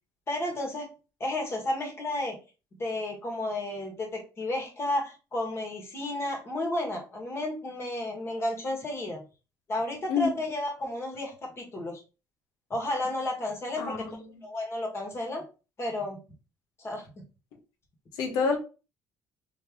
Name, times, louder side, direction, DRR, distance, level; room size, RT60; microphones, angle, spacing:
voice 1, 0.3-0.9 1.2-2.4 2.8-9.2 9.7-12.0 12.7-14.1 14.4-15.4 15.8-16.2 16.8-17.0, left 1 dB, 40° left, 1 dB, 1.6 m, -32 dB
voice 2, 13.8-14.1 18.1-18.6, left 5 dB, 85° left, 3 dB, 1.1 m, -27 dB
3.6 x 3.0 x 3.0 m, 0.32 s
cardioid pair, 90°, 7 cm